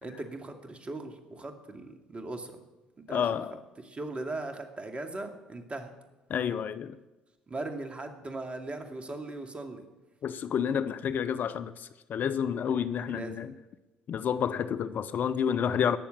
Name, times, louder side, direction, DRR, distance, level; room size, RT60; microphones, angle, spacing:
voice 1, 0.0-2.6 3.1-3.2 3.8-5.9 7.5-9.8 13.1-13.4, right 2 dB, 30° right, 2.4 m, -39 dB
voice 2, 3.1-3.5 6.3-7.0 10.2-13.5 14.1-16.0, left 8 dB, 50° left, 0.6 m, -29 dB
18.0 x 7.1 x 8.6 m
hypercardioid pair, 55°, 4 cm